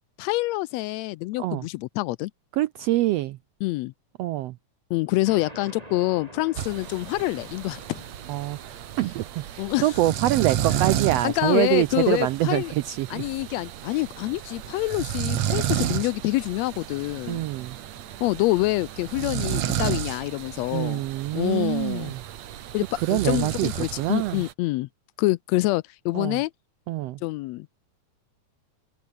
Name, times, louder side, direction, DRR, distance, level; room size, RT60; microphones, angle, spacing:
voice 1, 0.2-2.3 3.6-3.9 4.9-8.0 9.6-9.9 11.2-12.7 13.1-17.4 18.2-21.0 21.3-22.1 22.7-24.9 25.2-26.5 27.2-27.7, left 19 dB, 85° left, 1.5 m, -26 dB
voice 2, 2.6-3.4 4.2-4.6 8.3-13.3 15.8-16.0 17.3-17.8 20.7-22.2 22.9-23.7 24.0-24.4 26.1-26.4 26.9-27.2, right 15 dB, 90° right, 1.4 m, -25 dB
sound 1, 5.2-12.4, right 1 dB, 10° right, 5.9 m, -48 dB
sound 2, 6.6-24.5, right 11 dB, 65° right, 2.5 m, -32 dB
omnidirectional pair, 3.6 m